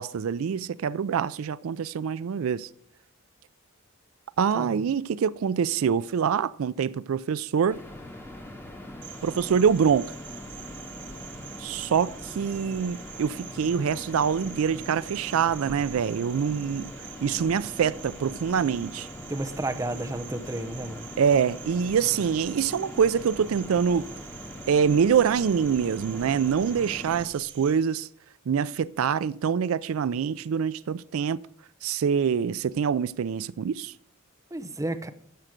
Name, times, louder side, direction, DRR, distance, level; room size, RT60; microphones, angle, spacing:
voice 1, 0.0-2.7 4.4-7.8 9.2-10.1 11.6-16.9 17.2-19.1 21.2-24.1 24.7-28.1 28.5-31.4 31.8-33.9, right 7 dB, 80° right, 0.4 m, -25 dB
sound 1, 7.7-27.3, left 1 dB, 10° left, 2.4 m, -42 dB
Cricket, 9.0-27.7, right 11 dB, 60° right, 1.3 m, -46 dB
voice 2, 19.3-21.1 34.5-35.1, right 1 dB, 15° right, 0.8 m, -32 dB
13.5 x 7.9 x 5.1 m
head